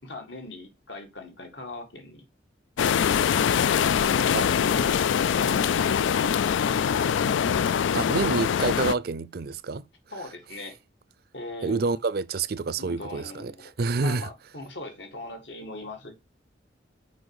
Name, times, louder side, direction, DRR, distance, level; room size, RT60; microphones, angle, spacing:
voice 1, 0.0-2.3 3.7-5.9 6.3-6.9 10.1-10.8 11.3-11.8 12.8-13.7 14.0-16.1, left 2 dB, 70° left, 2.0 m, -40 dB
sound 1, 2.8-8.9, left 8 dB, 85° left, 0.4 m, -23 dB
voice 2, 7.9-9.9 11.6-13.5 13.8-14.3, right 4 dB, 55° right, 0.5 m, -27 dB
6.3 x 5.3 x 4.8 m
head